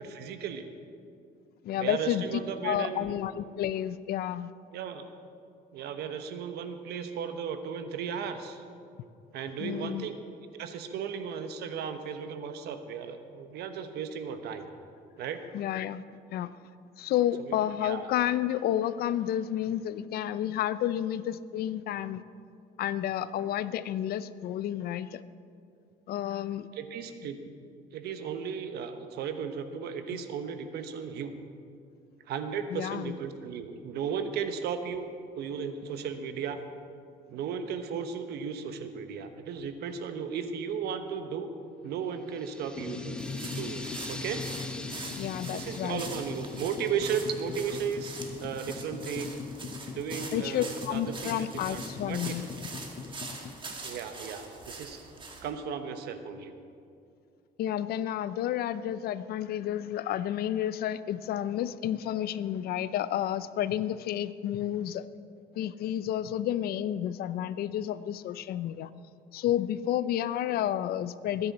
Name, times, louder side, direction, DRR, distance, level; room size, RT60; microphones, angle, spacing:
voice 1, 0.1-0.7 1.8-3.1 4.7-5.0 5.7-8.6 9.3-10.1 10.5-14.7 15.2-15.4 17.4-17.6 17.8-18.1 26.7-27.4 27.9-31.3 32.3-35.1 35.4-36.6 37.3-41.5 41.8-43.2 43.5-44.4 45.5-49.3 49.9-52.4 53.8-55.1 55.4-56.5, right 7 dB, 75° right, 8 dB, 1.2 m, -35 dB
voice 2, 1.6-4.5 9.6-10.1 15.5-16.0 16.3-16.6 17.0-22.2 22.8-25.2 26.1-26.7 30.1-30.2 32.7-33.1 45.0-46.0 50.3-52.5 57.6-65.0 65.5-68.9 69.3-71.5, left 11 dB, 65° left, 15 dB, 0.5 m, -31 dB
sound 1, 42.3-48.6, left 1 dB, 5° left, 1.1 m, -45 dB
sound 2, 42.8-53.5, left 5 dB, 35° left, 0.8 m, -41 dB
sound 3, 43.2-55.5, right 3 dB, 30° right, 1.9 m, -44 dB
21.5 x 9.8 x 4.2 m, 2.4 s
cardioid pair, 110°, 17 cm